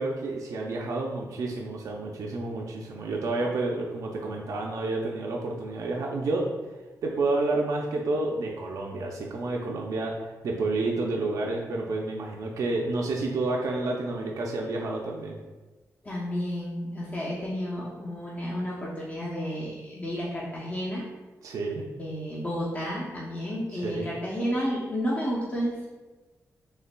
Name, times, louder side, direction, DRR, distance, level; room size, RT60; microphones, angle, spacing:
voice 1, 0.0-6.5 7.0-15.4 21.4-21.9 23.7-24.1, right 2 dB, 70° right, -1 dB, 0.5 m, -30 dB
voice 2, 16.0-21.0 22.0-25.9, equal, 25° left, -6 dB, 0.7 m, -31 dB
5.4 x 3.2 x 2.2 m, 1.2 s
wide cardioid pair, 145°, 6 cm